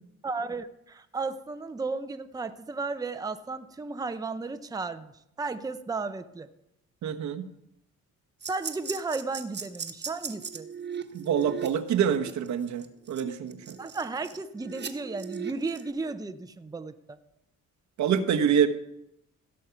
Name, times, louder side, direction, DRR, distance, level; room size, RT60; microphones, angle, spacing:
voice 1, 0.2-5.1 5.4-6.5 8.5-10.7 13.8-17.2, right 3 dB, 10° right, 9 dB, 0.7 m, -34 dB
voice 2, 7.0-7.5 11.1-13.8 18.0-18.7, right 8 dB, 70° right, 7 dB, 1.1 m, -26 dB
sound 1, 8.4-15.9, right 6 dB, 35° right, 1.3 m, -38 dB
16.5 x 6.5 x 5.7 m, 0.81 s
cardioid pair, 90°, 30 cm